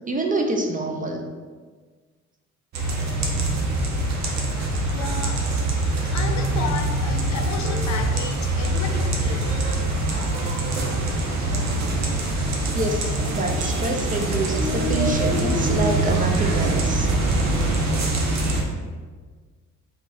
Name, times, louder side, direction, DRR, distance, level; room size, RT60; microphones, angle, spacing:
voice 1, 0.1-1.2 12.7-17.1, right 2 dB, 25° right, 2 dB, 0.6 m, -26 dB
sound 1, 2.7-18.6, right 2 dB, 65° right, 0.9 m, -23 dB
voice 2, 4.8-9.7, left 5 dB, 65° left, 4 dB, 0.7 m, -33 dB
3.6 x 2.7 x 4.7 m, 1.5 s
cardioid pair, 90°, 30 cm